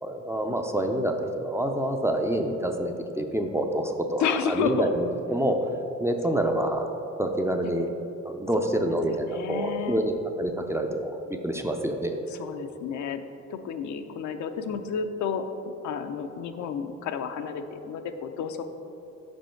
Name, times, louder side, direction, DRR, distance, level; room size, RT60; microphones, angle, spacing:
voice 1, 0.0-5.7 6.0-6.9 7.2-7.9 8.2-12.2, right 1 dB, 10° right, 4 dB, 0.4 m, -27 dB
voice 2, 4.2-4.9 7.6-7.7 8.6-9.0 9.3-10.1 12.3-13.2 13.5-15.5 15.8-18.6, left 6 dB, 70° left, 7 dB, 0.5 m, -31 dB
5.6 x 5.3 x 4.4 m, 2.8 s
cardioid pair, 90°, 30 cm